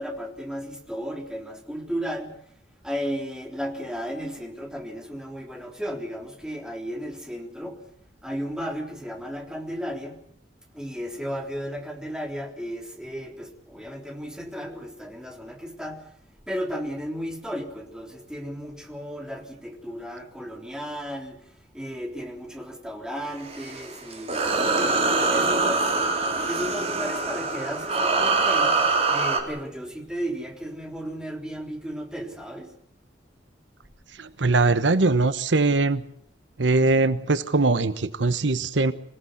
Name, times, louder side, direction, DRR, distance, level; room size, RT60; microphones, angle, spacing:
voice 1, 0.0-2.4 2.8-7.9 8.2-10.3 10.7-16.1 16.5-26.0 26.5-28.8 29.1-32.8, equal, 5° right, 3.5 m, -34 dB
sound 1, 23.4-29.4, right 3 dB, 35° right, 3.7 m, -24 dB
voice 2, 34.2-36.0 36.6-38.9, right 3 dB, 80° right, 1.1 m, -21 dB
26.0 x 17.5 x 8.0 m
head